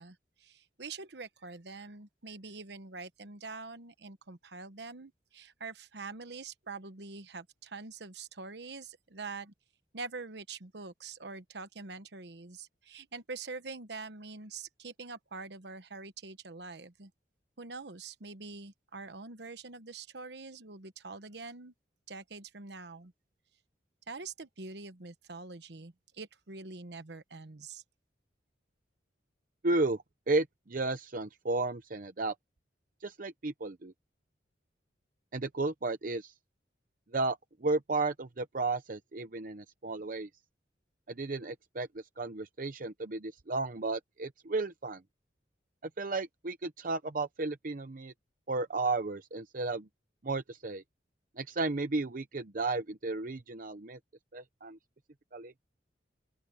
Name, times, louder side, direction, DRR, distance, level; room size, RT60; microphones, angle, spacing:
voice 1, 0.0-9.5 9.9-17.1 17.6-21.7 22.1-23.1 24.1-27.8, right 4 dB, 65° right, 1.1 m, -45 dB
voice 2, 29.6-32.3 33.0-33.9 35.3-36.3 37.1-40.3 41.1-45.0 46.0-48.1 48.5-49.9 50.2-50.8 51.4-54.0 54.3-54.8 55.3-55.5, right 3 dB, 45° right, 0.8 m, -33 dB
open air
head